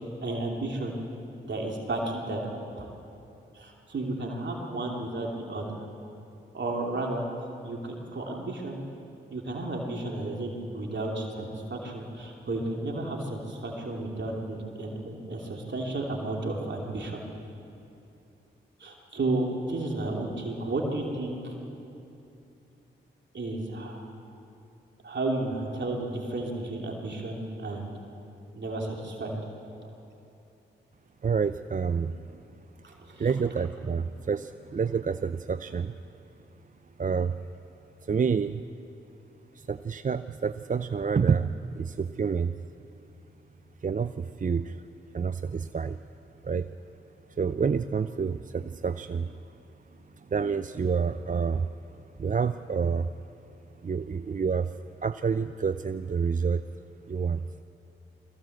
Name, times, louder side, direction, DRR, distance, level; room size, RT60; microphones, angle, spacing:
voice 1, 0.2-1.0 1.5-2.4 2.8-2.9 3.5-5.8 6.5-7.3 7.6-8.9 9.3-17.2 18.8-21.5 23.3-24.0 25.0-27.9 28.5-29.4 32.8-33.3, right 2 dB, 60° right, -1 dB, 2.9 m, -32 dB
voice 2, 31.2-32.4 33.2-35.9 37.0-37.4 38.0-38.6 39.5-42.5 43.8-44.8 45.1-46.0 46.4-46.7 47.4-49.4 50.1-51.7 52.2-53.1 53.8-56.6 57.1-57.4, right 6 dB, 40° right, 11 dB, 0.6 m, -28 dB
21.5 x 15.5 x 7.9 m, 2.8 s
supercardioid pair, 40°, 21 cm